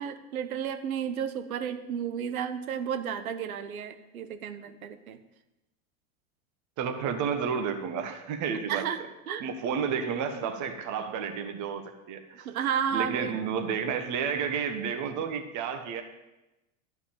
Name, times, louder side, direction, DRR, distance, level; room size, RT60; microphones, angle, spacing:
voice 1, 0.0-5.2 8.7-9.0 9.3-9.5 12.3-13.3, right 8 dB, 85° right, 9 dB, 1.1 m, -32 dB
voice 2, 6.8-8.9 9.4-12.4 12.9-16.0, right 6 dB, 45° right, 7 dB, 1.5 m, -31 dB
11.5 x 5.3 x 8.7 m, 1.0 s
hypercardioid pair, 110°, 41 cm